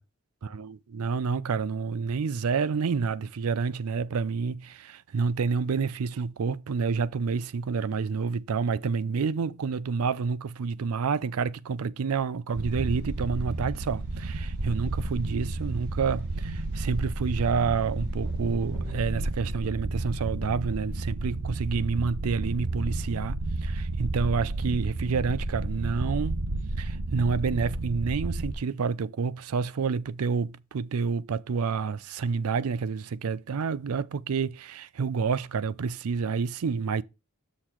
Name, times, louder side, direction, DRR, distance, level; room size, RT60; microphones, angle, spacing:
voice 1, 0.5-26.4 26.8-37.0, right 5 dB, 70° right, 0.4 m, -29 dB
sound 1, 12.5-19.4, equal, 50° right, 3.8 m, -53 dB
sound 2, 12.6-28.5, right 2 dB, 90° right, 1.1 m, -31 dB
6.5 x 5.7 x 4.5 m
head